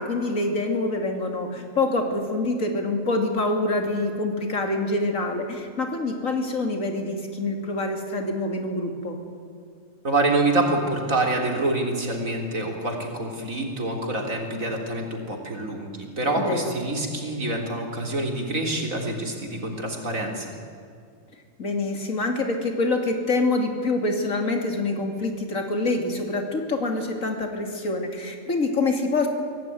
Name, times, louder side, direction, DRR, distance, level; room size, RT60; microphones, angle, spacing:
voice 1, 0.0-9.2 16.4-16.8 21.6-29.3, left 2 dB, 80° left, 4 dB, 3.1 m, -26 dB
voice 2, 10.0-20.5, right 2 dB, 85° right, 2 dB, 3.9 m, -26 dB
25.0 x 16.5 x 9.3 m, 2.3 s
omnidirectional pair, 1.4 m